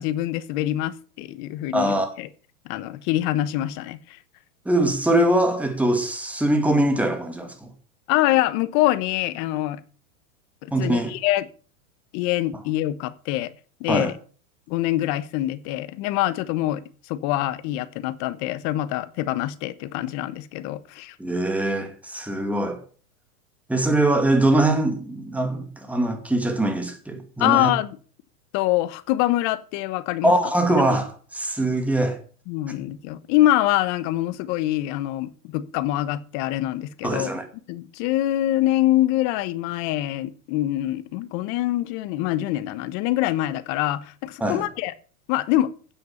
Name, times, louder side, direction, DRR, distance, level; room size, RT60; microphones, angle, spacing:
voice 1, 0.0-2.3 2.6-4.0 8.1-9.8 10.6-11.5 12.1-13.5 13.8-14.1 14.7-16.8 17.1-21.1 27.4-27.9 28.5-30.3 32.5-37.3 37.7-44.9 45.3-45.7, left 14 dB, 40° left, 1.1 m, -24 dB
voice 2, 1.7-2.1 4.7-7.7 10.7-11.1 13.9-14.1 21.2-22.8 23.7-27.7 30.2-32.2 37.0-37.4 44.4-44.6, right 1 dB, 5° right, 2.3 m, -22 dB
9.9 x 7.9 x 7.1 m
hypercardioid pair, 130°, 45 cm